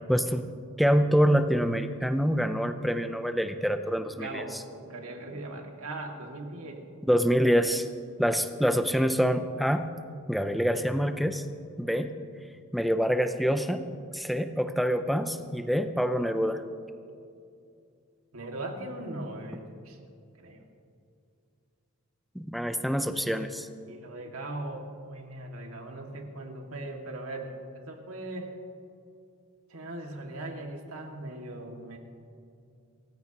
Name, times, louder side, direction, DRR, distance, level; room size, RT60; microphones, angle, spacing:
voice 1, 0.1-0.5 0.8-4.6 7.1-7.9 8.2-9.9 10.3-11.4 11.8-12.2 12.7-13.9 14.1-16.6 22.3-23.7, equal, ahead, 8 dB, 0.6 m, -26 dB
voice 2, 4.1-6.9 18.3-20.0 20.4-20.6 23.9-27.6 27.8-28.5 29.7-32.0, right 2 dB, 80° right, 1 dB, 2.2 m, -39 dB
27.5 x 15.0 x 3.0 m, 2.4 s
head